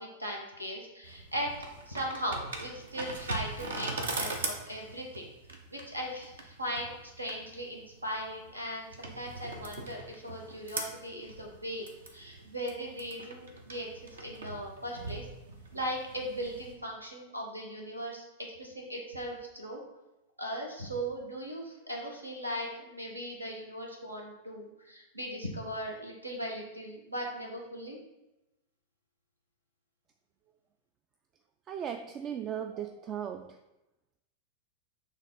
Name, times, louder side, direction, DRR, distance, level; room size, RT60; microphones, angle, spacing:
voice 1, 0.0-1.5 1.9-5.3 5.7-15.2 15.7-18.2 18.6-19.8 20.4-28.0, equal, 85° right, 0 dB, 1.2 m, -38 dB
sound 1, 1.0-16.7, right 3 dB, 65° right, 0.9 m, -41 dB
voice 2, 31.7-33.6, right 9 dB, 30° right, 7 dB, 0.3 m, -37 dB
6.4 x 3.4 x 5.3 m, 0.96 s
figure-of-eight pair, 90°, 0 cm